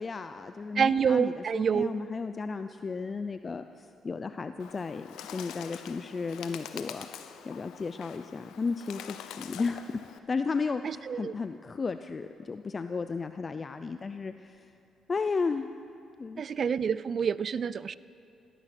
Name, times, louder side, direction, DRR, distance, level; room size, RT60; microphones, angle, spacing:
voice 1, 0.0-14.7 15.1-15.7 16.2-16.4, left 4 dB, 35° left, 9 dB, 0.5 m, -34 dB
voice 2, 0.8-1.9 10.8-11.3 16.4-18.0, right 7 dB, 50° right, 18 dB, 0.4 m, -27 dB
Bird, 4.6-10.2, left 9 dB, 90° left, 0.7 m, -45 dB
17.5 x 13.5 x 6.0 m, 2.9 s
cardioid pair, 90°, 0 cm